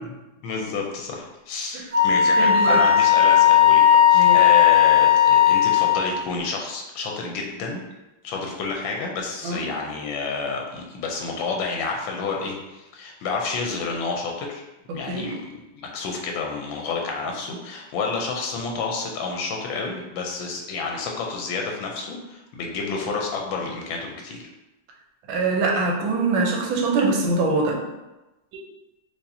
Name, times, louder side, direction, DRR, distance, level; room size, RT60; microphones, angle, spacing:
voice 1, 0.4-3.8 4.1-7.8 8.2-14.6 14.9-15.6 15.9-24.5, left 4 dB, 85° left, 1 dB, 1.4 m, -29 dB
Wind instrument woodwind instrument, 1.9-6.1, left 10 dB, 40° right, 0.9 m, -16 dB
voice 2, 2.4-2.8 4.1-4.4 9.4-9.6 14.9-15.3 25.3-27.8, right 3 dB, 90° right, 0 dB, 1.5 m, -23 dB
4.7 x 2.5 x 2.7 m, 0.99 s
omnidirectional pair, 2.1 m